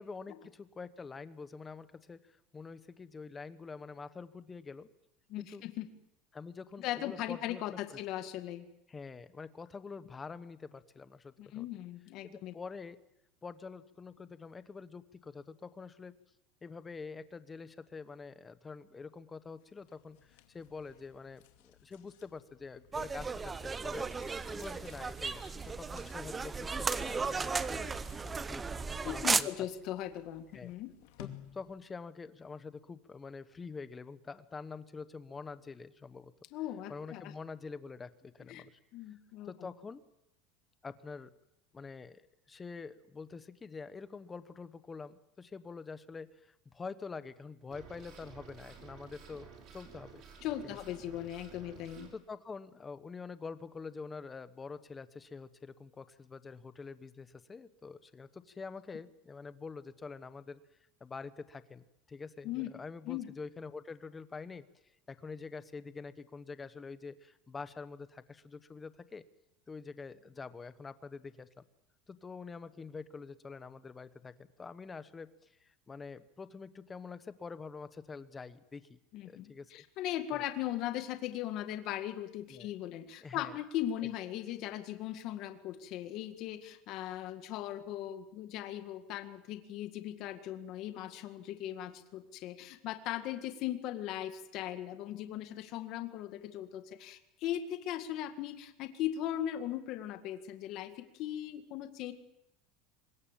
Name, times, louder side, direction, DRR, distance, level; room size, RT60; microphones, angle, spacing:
voice 1, 0.0-4.9 5.4-5.6 6.3-8.0 8.9-11.7 12.2-13.0 13.4-16.2 16.6-24.1 24.5-27.9 28.2-29.5 30.5-30.7 31.2-36.3 36.9-38.8 39.4-40.0 40.8-41.3 41.7-50.2 50.6-50.8 52.1-60.6 61.0-64.7 65.1-69.2 69.7-71.6 72.1-79.0 79.2-79.8 80.3-80.4 82.5-82.7 83.2-83.5, left 4 dB, 15° left, 13 dB, 1.0 m, -46 dB
voice 2, 5.3-5.9 6.8-8.7 11.4-12.5 29.0-30.9 36.5-37.3 38.5-38.6 38.9-39.5 50.4-52.1 62.4-62.7 63.1-63.3 79.1-102.1, left 12 dB, 45° left, 8 dB, 1.9 m, -38 dB
sound 1, 19.6-32.0, left 12 dB, 75° left, 2.5 m, -57 dB
sound 2, 22.9-29.4, right 4 dB, 15° right, 0.8 m, -35 dB
sound 3, 47.7-52.1, right 5 dB, 45° right, 5.9 m, -53 dB
24.5 x 21.5 x 7.5 m, 0.85 s
supercardioid pair, 155°, 0 cm